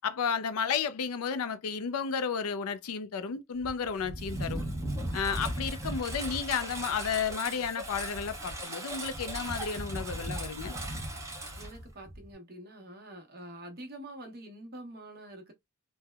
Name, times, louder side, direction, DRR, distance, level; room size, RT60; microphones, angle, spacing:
voice 1, 0.0-4.6 5.1-10.8, left 6 dB, 80° left, 0.4 m, -32 dB
Engine, 3.6-12.3, right 1 dB, 15° right, 0.8 m, -37 dB
voice 2, 11.5-15.5, right 1 dB, 45° right, 1.0 m, -46 dB
3.3 x 2.1 x 2.2 m
head